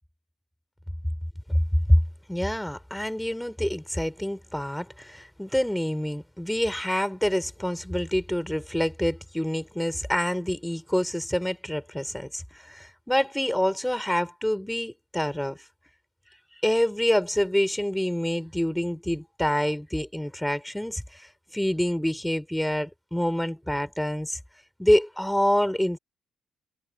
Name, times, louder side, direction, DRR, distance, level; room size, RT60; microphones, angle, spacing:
voice 1, 2.3-15.6 16.6-21.3 21.5-24.4 24.8-26.0, equal, 5° left, 4.2 m, -26 dB
cardioid pair, 90°, 0 cm